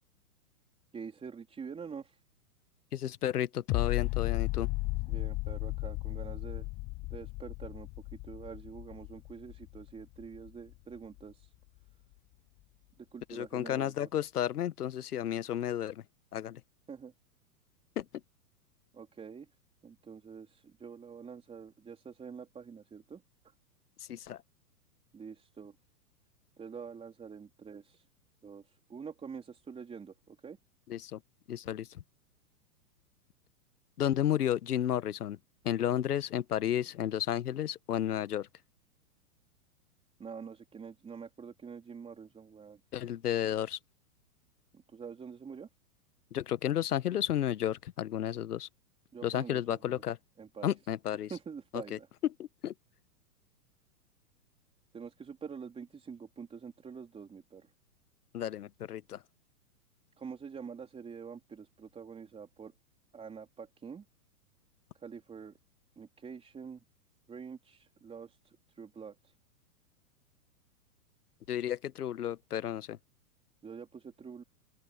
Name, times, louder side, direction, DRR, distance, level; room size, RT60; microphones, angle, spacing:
voice 1, 0.9-2.2 5.1-6.7 7.1-11.5 13.0-14.1 16.9-17.1 18.9-19.5 19.8-23.2 25.1-25.7 26.6-28.0 28.4-28.6 28.9-30.6 40.2-42.8 44.7-45.7 49.1-50.0 50.4-50.7 51.3-52.1 54.9-57.7 60.2-62.7 63.1-64.0 65.0-65.5 66.0-66.8 67.3-69.2 73.6-74.4, right 6 dB, 15° right, 4.0 m, -46 dB
voice 2, 2.9-4.7 13.3-16.0 16.3-16.6 18.0-18.1 24.1-24.4 30.9-31.2 31.5-31.9 34.0-35.4 35.6-38.5 42.9-43.8 46.3-48.7 49.2-50.2 50.6-51.3 51.7-52.0 52.4-52.7 58.3-59.2 71.5-73.0, left 11 dB, 90° left, 1.3 m, -32 dB
sound 1, 3.7-10.7 11.2-11.3, left 24 dB, 35° left, 7.4 m, -35 dB
open air
hypercardioid pair, 140°, 45 cm